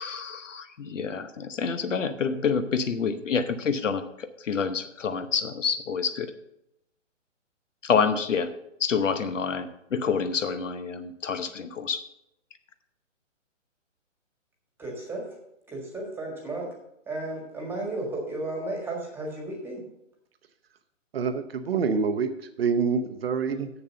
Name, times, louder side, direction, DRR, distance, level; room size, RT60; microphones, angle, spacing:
voice 1, 0.0-6.3 7.8-8.5 8.8-12.1, left 6 dB, 75° left, 10 dB, 1.0 m, -28 dB
voice 2, 14.8-15.2 15.7-16.7 17.1-19.8, right 2 dB, 5° right, 0 dB, 1.6 m, -33 dB
voice 3, 21.1-22.3 22.6-23.7, right 5 dB, 50° right, 8 dB, 0.9 m, -26 dB
7.2 x 6.9 x 6.7 m, 0.82 s
hypercardioid pair, 145°, 38 cm